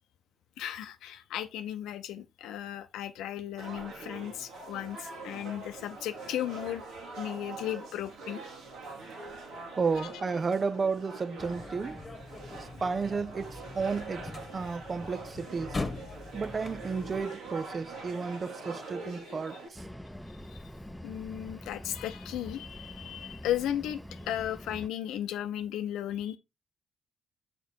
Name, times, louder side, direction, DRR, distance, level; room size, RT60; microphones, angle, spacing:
voice 1, 0.6-6.8 7.1-8.4 10.0-10.1 19.5-19.6 20.5-20.6 21.0-26.4, left 11 dB, 70° left, 0.6 m, -35 dB
sound 1, 3.6-19.7, right 3 dB, 75° right, 2.0 m, -44 dB
voice 2, 9.7-12.0 12.6-15.8 16.3-19.9, right 5 dB, 40° right, 0.5 m, -32 dB
sound 2, 11.4-17.2, left 3 dB, 35° left, 1.2 m, -41 dB
sound 3, 19.7-24.9, equal, ahead, 0.6 m, -45 dB
6.7 x 4.3 x 4.5 m
hypercardioid pair, 40°, 0 cm